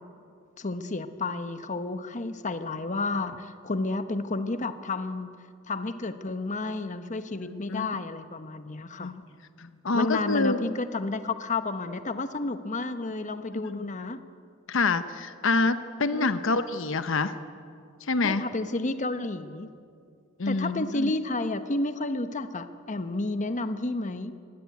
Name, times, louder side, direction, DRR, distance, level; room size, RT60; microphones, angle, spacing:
voice 1, 0.6-5.3 5.7-9.1 9.9-14.2 16.1-16.6 18.2-19.7 20.4-24.3, left 2 dB, 35° left, 10 dB, 1.0 m, -31 dB
voice 2, 7.4-7.9 9.0-9.1 9.6-10.6 13.7-13.9 14.7-17.4 18.0-18.4 20.4-21.1, left 3 dB, 65° left, 11 dB, 0.9 m, -27 dB
24.0 x 17.5 x 9.6 m, 2.3 s
head